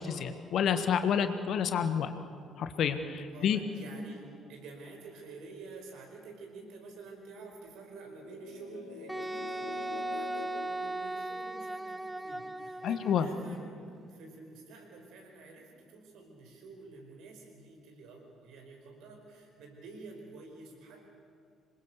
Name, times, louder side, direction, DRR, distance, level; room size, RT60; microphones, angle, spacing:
voice 1, 0.0-2.1 2.6-3.6 12.8-13.3, left 8 dB, 55° left, 9 dB, 1.4 m, -29 dB
voice 2, 3.3-21.0, right 3 dB, 60° right, 1 dB, 5.2 m, -49 dB
sound 1, 8.0-11.8, left 8 dB, 80° left, 1.5 m, -47 dB
Wind instrument woodwind instrument, 9.1-13.4, right 2 dB, 10° right, 0.5 m, -37 dB
26.5 x 21.5 x 6.9 m, 2.3 s
figure-of-eight pair, 45°, 0 cm